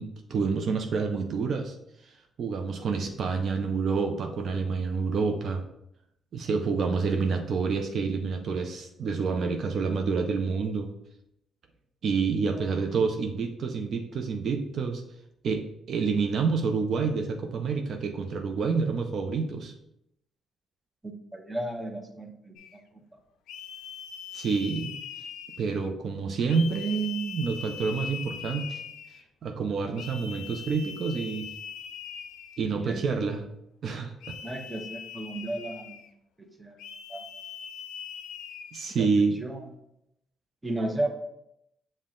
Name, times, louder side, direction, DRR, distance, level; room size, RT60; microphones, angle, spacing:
voice 1, 0.0-1.8 2.0-5.6 6.3-10.9 12.0-15.0 15.4-19.7 24.3-24.9 25.6-28.8 29.4-31.5 32.6-33.4 33.8-34.1 38.7-39.4, right 5 dB, 60° right, 5 dB, 0.4 m, -28 dB
voice 2, 21.0-22.5 32.8-33.3 34.4-36.0 36.4-36.8 37.1-37.2 38.9-39.1 39.4-39.6 40.6-41.1, right 1 dB, 15° right, 3 dB, 0.7 m, -34 dB
sound 1, 22.6-22.8 23.5-25.9 26.5-29.2 30.0-32.8 34.2-36.1 36.8-38.9, left 7 dB, 85° left, 0.3 m, -41 dB
5.6 x 2.1 x 3.6 m, 0.80 s
cardioid pair, 90°, 0 cm